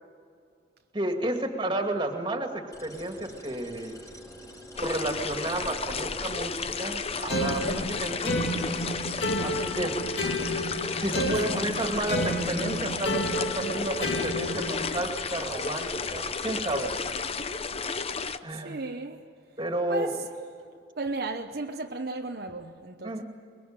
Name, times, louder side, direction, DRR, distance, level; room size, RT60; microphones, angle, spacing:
voice 1, 0.9-4.0 4.8-8.4 9.4-10.0 10.9-16.9 18.4-18.8 19.6-20.1 23.0-23.2, right 1 dB, 25° right, 2.4 m, -32 dB
sound 1, 2.7-17.2, equal, 20° left, 4.7 m, -46 dB
sound 2, 4.8-18.4, left 5 dB, 35° left, 0.7 m, -33 dB
sound 3, 7.3-15.0, equal, 75° left, 2.2 m, -31 dB
voice 2, 7.5-7.9 10.1-10.3 11.2-11.4 18.5-19.3 19.9-20.3 21.0-23.2, right 3 dB, 60° right, 0.9 m, -35 dB
22.5 x 22.0 x 9.0 m
head